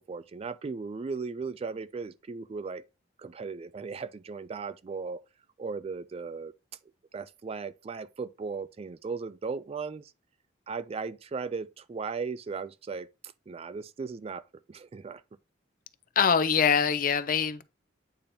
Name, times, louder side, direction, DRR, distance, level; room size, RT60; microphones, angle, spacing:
voice 1, 0.1-2.8 3.2-5.2 5.6-6.5 7.1-10.1 10.7-13.1 13.5-15.2, right 4 dB, 30° right, 0.3 m, -37 dB
voice 2, 16.2-17.6, left 6 dB, 45° left, 0.5 m, -24 dB
8.6 x 2.9 x 5.1 m
head